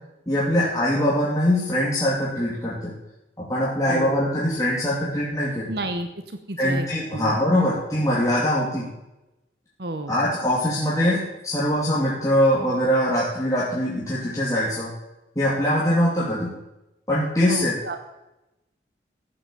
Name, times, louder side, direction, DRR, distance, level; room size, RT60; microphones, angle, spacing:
voice 1, 0.3-2.9 3.4-5.7 6.6-8.9 10.1-14.9 15.4-16.5 17.1-17.7, equal, 20° left, -7 dB, 2.7 m, -22 dB
voice 2, 3.8-4.2 5.7-7.4 7.7-7.8 9.8-10.1 17.5-18.0, right 2 dB, 60° right, 7 dB, 1.1 m, -31 dB
14.5 x 8.0 x 7.4 m, 0.95 s
head